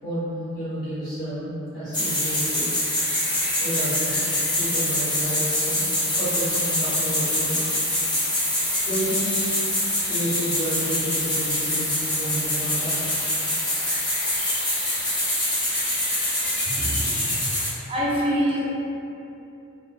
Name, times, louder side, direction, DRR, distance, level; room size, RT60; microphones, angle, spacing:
voice 1, 0.0-2.6 3.6-4.2 4.5-5.9 6.1-7.6 8.8-9.3 10.0-13.1 16.6-17.5, right 1 dB, 45° left, -16 dB, 0.9 m, -31 dB
sound 1, 1.9-17.7, left 1 dB, 20° left, 0.6 m, -25 dB
voice 2, 16.8-17.2 17.9-18.7, equal, 25° right, -6 dB, 0.4 m, -25 dB
2.3 x 2.1 x 2.9 m, 2.8 s
head